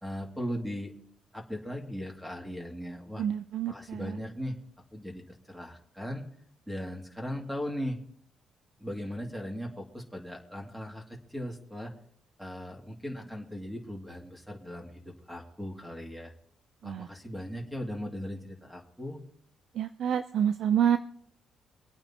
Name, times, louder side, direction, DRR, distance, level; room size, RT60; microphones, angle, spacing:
voice 1, 0.0-0.9 1.3-3.2 3.7-4.6 4.9-6.3 6.7-8.0 8.8-11.9 12.4-16.3 16.8-19.2, equal, 5° right, 2 dB, 2.5 m, -38 dB
voice 2, 3.2-4.2 16.8-17.1 19.7-21.0, right 9 dB, 70° right, 11 dB, 0.5 m, -28 dB
25.0 x 8.8 x 2.9 m, 0.68 s
cardioid pair, 90°, 0 cm